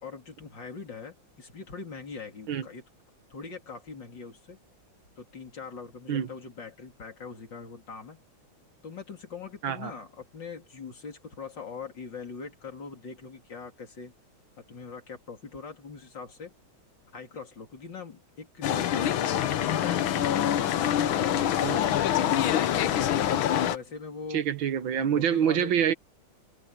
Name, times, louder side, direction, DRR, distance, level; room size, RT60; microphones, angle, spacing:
voice 1, 0.0-2.8 3.3-4.6 5.2-8.2 8.8-14.1 14.6-16.5 17.1-23.2 23.7-24.5 25.0-25.8, left 5 dB, 60° left, 3.9 m, -42 dB
sound 1, 18.6-23.8, left 10 dB, 75° left, 1.8 m, -25 dB
voice 2, 24.3-25.9, right 9 dB, 75° right, 1.8 m, -26 dB
omnidirectional pair, 2.2 m